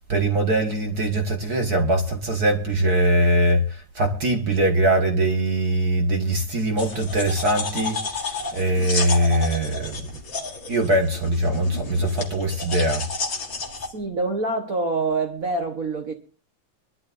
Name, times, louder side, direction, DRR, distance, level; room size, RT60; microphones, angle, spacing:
voice 1, 0.1-8.0 8.5-10.0 10.7-13.0, right 1 dB, 40° right, 1.6 m, -22 dB
sound 1, 6.8-13.9, left 3 dB, 35° left, 1.9 m, -31 dB
voice 2, 13.9-16.1, right 3 dB, 70° right, 0.8 m, -26 dB
23.5 x 12.0 x 2.6 m
omnidirectional pair, 3.4 m